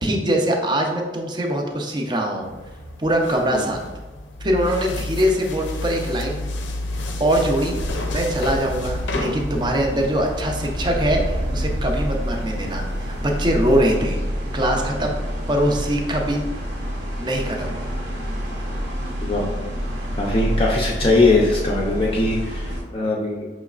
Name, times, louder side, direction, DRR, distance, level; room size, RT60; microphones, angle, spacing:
voice 1, 0.0-2.5 3.0-3.9 4.4-6.5 7.2-7.8 8.1-14.2 14.5-15.2 15.5-16.4 17.2-17.9, right 1 dB, 25° right, 1 dB, 0.5 m, -22 dB
sound 1, 2.4-13.9, left 1 dB, 90° left, 0.5 m, -31 dB
sound 2, 7.6-22.8, equal, 75° right, 0.9 m, -28 dB
voice 2, 20.2-23.5, left 2 dB, 30° left, -3 dB, 0.4 m, -20 dB
5.6 x 3.0 x 2.4 m, 1.2 s
head